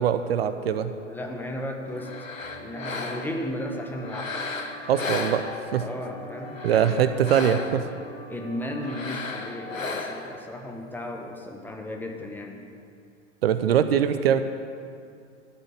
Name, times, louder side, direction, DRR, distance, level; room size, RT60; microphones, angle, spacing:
voice 1, 0.0-0.9 4.9-5.4 5.7-5.8 6.6-7.9 13.4-14.4, right 9 dB, 50° right, 11 dB, 0.7 m, -22 dB
voice 2, 1.1-2.2 2.6-4.4 5.8-7.0 8.3-12.6, left 1 dB, 5° left, 1 dB, 1.2 m, -35 dB
sound 1, 1.9-9.9, left 2 dB, 35° left, 3.3 m, -44 dB
sound 2, 2.0-3.5 4.0-5.9 6.4-7.9 8.8-10.4, left 3 dB, 80° left, 1.4 m, -34 dB
13.0 x 6.5 x 9.6 m, 2.4 s
figure-of-eight pair, 105°, 39 cm